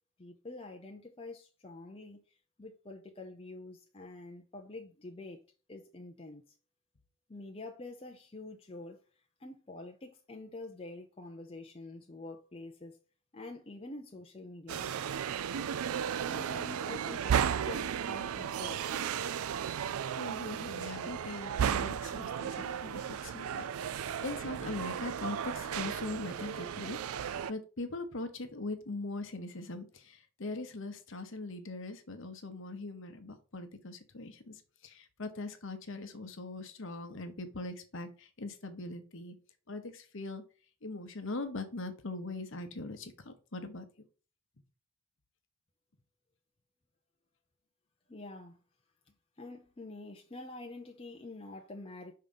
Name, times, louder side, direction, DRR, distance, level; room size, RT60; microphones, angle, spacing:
voice 1, 0.2-5.4 5.7-6.4 7.3-9.0 9.4-13.0 13.3-14.9 16.3-17.4 17.6-19.1 48.1-48.6 49.4-52.1, left 2 dB, 25° left, 0.6 m, -46 dB
sound 1, 14.7-27.5, right 8 dB, 75° right, 0.3 m, -34 dB
voice 2, 20.0-23.6 24.2-39.3 39.7-40.4 40.8-43.9, left 2 dB, 55° left, 1.0 m, -41 dB
5.7 x 3.7 x 5.4 m
head